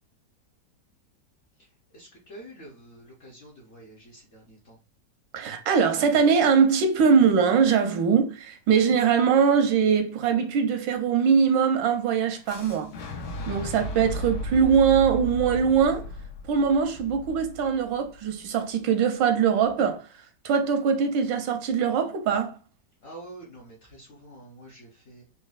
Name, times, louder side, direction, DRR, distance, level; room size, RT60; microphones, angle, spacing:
voice 1, 1.9-4.8 23.0-25.2, right 1 dB, 55° left, 0.8 m, -47 dB
voice 2, 5.3-12.9 13.5-16.1 16.5-22.6, right 6 dB, 85° right, 1.3 m, -22 dB
Boom, 12.5-18.3, equal, 75° left, 1.3 m, -35 dB
4.1 x 2.3 x 2.3 m
omnidirectional pair, 2.0 m